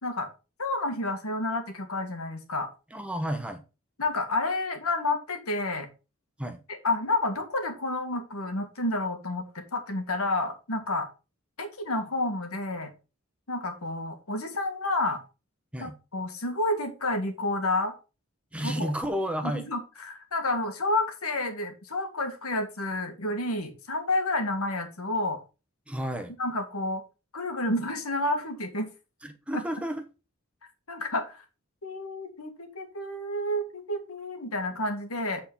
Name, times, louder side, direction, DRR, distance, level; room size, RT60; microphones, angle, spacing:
voice 1, 0.6-2.7 4.0-5.9 6.8-11.1 11.6-12.9 13.5-15.2 15.8-18.0 18.6-18.9 19.5-25.4 26.4-27.0 27.3-28.9 29.5-29.6 30.9-31.4 31.8-35.4, left 2 dB, 85° left, 1.9 m, -30 dB
voice 2, 2.9-3.6 6.4-6.6 15.7-15.9 18.5-19.6 25.9-26.3 29.2-30.0, equal, 5° right, 1.0 m, -31 dB
8.6 x 4.3 x 5.5 m
head